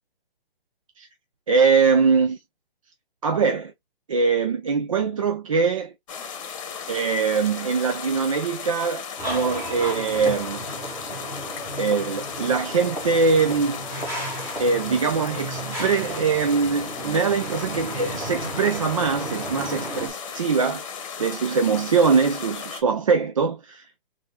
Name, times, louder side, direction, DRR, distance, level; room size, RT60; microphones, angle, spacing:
voice 1, 1.5-2.4 3.2-3.7 4.1-5.9 6.9-10.6 11.8-13.8 14.6-20.8 21.2-23.8, right 5 dB, 35° right, 0.4 m, -22 dB
sound 1, 6.1-22.8, left 6 dB, 35° left, 1.0 m, -36 dB
sound 2, 9.2-20.1, right 1 dB, 10° right, 1.1 m, -34 dB
3.7 x 3.3 x 2.2 m
hypercardioid pair, 160°, 30 cm